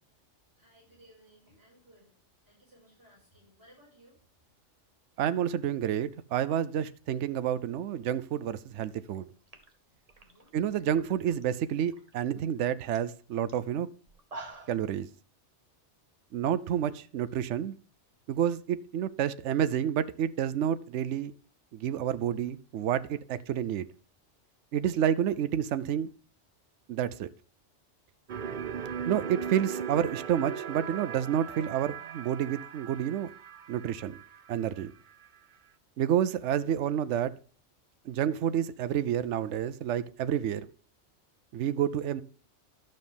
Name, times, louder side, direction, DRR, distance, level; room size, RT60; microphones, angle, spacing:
voice 1, 0.6-2.1 2.4-4.2 10.2-10.5, equal, 15° right, 5.8 m, -60 dB
voice 2, 5.2-9.3 10.5-13.9 14.7-15.1 16.3-17.7 18.3-21.3 21.7-23.9 24.7-26.1 26.9-27.3 29.1-33.3 33.7-34.2 34.5-34.9 36.0-37.3 38.1-40.7 41.5-42.2, right 9 dB, 75° right, 0.9 m, -29 dB
sound 1, 9.1-9.2 9.5-11.4 11.8-12.2 12.6-12.7 12.9-13.1 13.5-13.6 14.1-14.9, right 2 dB, 35° right, 1.3 m, -47 dB
sound 2, 28.3-35.3, right 7 dB, 55° right, 0.6 m, -39 dB
12.0 x 6.5 x 3.5 m
omnidirectional pair, 1.2 m